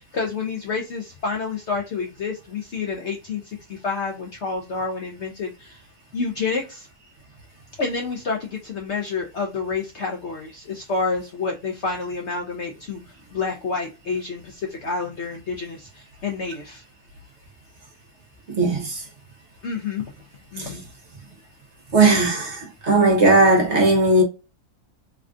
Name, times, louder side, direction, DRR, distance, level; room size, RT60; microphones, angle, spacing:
voice 1, 0.0-5.8 6.1-6.9 7.8-13.0 13.3-16.8 19.6-20.0 20.5-20.8, left 4 dB, 60° left, 0.8 m, -29 dB
voice 2, 18.5-19.1 20.6-20.8 21.9-24.2, right 2 dB, 50° right, 1.1 m, -18 dB
3.4 x 2.3 x 2.5 m
omnidirectional pair, 1.7 m